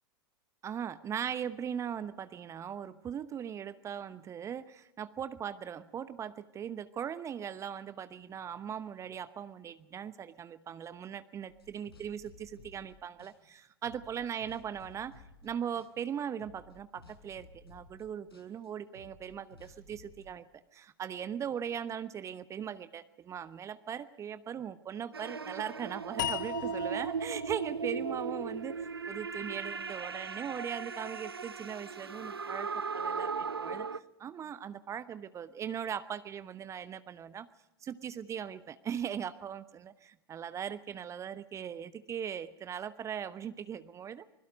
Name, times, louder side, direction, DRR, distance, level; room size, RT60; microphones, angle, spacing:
voice 1, 0.6-15.1 15.4-20.4 20.7-32.7 32.9-37.5 37.8-44.3, right 8 dB, 25° right, 14 dB, 0.9 m, -39 dB
sound 1, 11.5-12.9 13.2-15.5 15.7-16.1 16.4-20.2, left 3 dB, 80° left, 6.2 m, -56 dB
sound 2, 25.1-34.0, right 5 dB, 80° right, 0.7 m, -37 dB
sound 3, 26.2-29.4, left 14 dB, 55° left, 0.7 m, -40 dB
26.5 x 21.5 x 5.2 m, 0.96 s
figure-of-eight pair, 90°, 12 cm